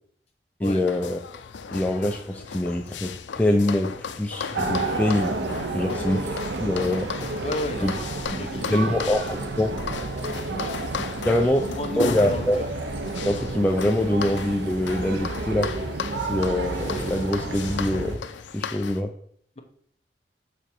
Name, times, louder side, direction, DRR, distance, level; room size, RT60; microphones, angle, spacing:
sound 1, 0.6-19.0, left 6 dB, 90° left, 0.5 m, -36 dB
voice 1, 0.6-1.2 1.7-5.3 5.7-6.2 6.6-7.1 7.8-7.9 8.3-9.7 11.3-11.6 12.0-12.6 13.3-15.7 16.3-18.2 18.5-19.1, left 1 dB, 10° left, 2 dB, 0.4 m, -24 dB
sound 2, 4.5-18.2, right 2 dB, 70° right, 0.8 m, -31 dB
voice 2, 7.4-8.1 8.4-9.0 9.6-9.7 10.5-10.7 11.3-12.7, left 1 dB, 35° left, 3 dB, 0.9 m, -33 dB
6.0 x 5.0 x 4.4 m, 0.62 s
head